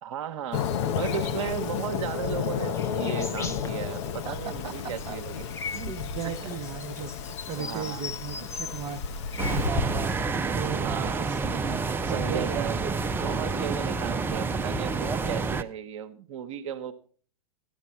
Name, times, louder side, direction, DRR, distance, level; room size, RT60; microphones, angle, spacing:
voice 1, 0.0-6.0 6.2-6.6 7.6-8.0 10.7-11.4 12.0-12.8 13.1-16.9, right 9 dB, 55° right, 8 dB, 0.9 m, -35 dB
Fireworks, 0.5-9.7, left 8 dB, 50° left, 1.0 m, -32 dB
sound 1, 0.6-10.1, left 3 dB, 15° left, 0.8 m, -39 dB
voice 2, 4.2-5.2 5.8-7.1 7.5-9.0 9.3-10.2 10.5-11.7 12.1-12.7, right 6 dB, 30° right, 4 dB, 0.9 m, -37 dB
sound 2, 9.4-15.6, right 4 dB, 10° right, 0.5 m, -28 dB
12.5 x 12.0 x 4.4 m, 0.43 s
figure-of-eight pair, 100°, 20 cm